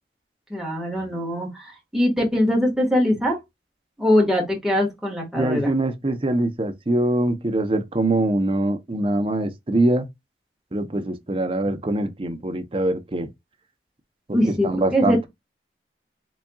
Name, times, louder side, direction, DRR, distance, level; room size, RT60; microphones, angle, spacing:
voice 1, 0.5-3.4 4.0-5.7 14.3-15.3, left 1 dB, 5° right, 1.6 m, -22 dB
voice 2, 5.4-10.1 10.7-13.3 14.3-14.4 14.6-15.3, right 1 dB, 30° right, 0.7 m, -23 dB
4.0 x 3.5 x 2.3 m
head